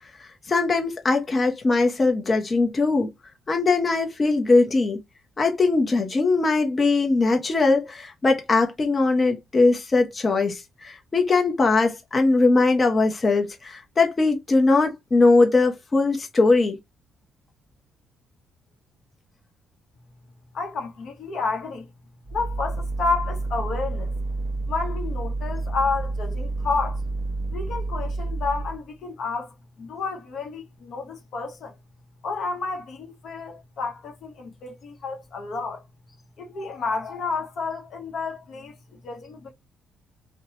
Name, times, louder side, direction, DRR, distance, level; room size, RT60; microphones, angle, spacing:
voice 1, 0.2-3.1 3.5-5.0 5.4-16.8, left 3 dB, 30° left, 0.7 m, -21 dB
voice 2, 20.5-21.9 22.3-24.1 24.7-27.0 27.5-31.7 32.2-35.8 36.4-39.5, left 4 dB, 65° left, 0.8 m, -30 dB
sound 1, 22.2-28.8, right 2 dB, 20° right, 1.0 m, -29 dB
2.8 x 2.1 x 2.7 m
cardioid pair, 90°, 0 cm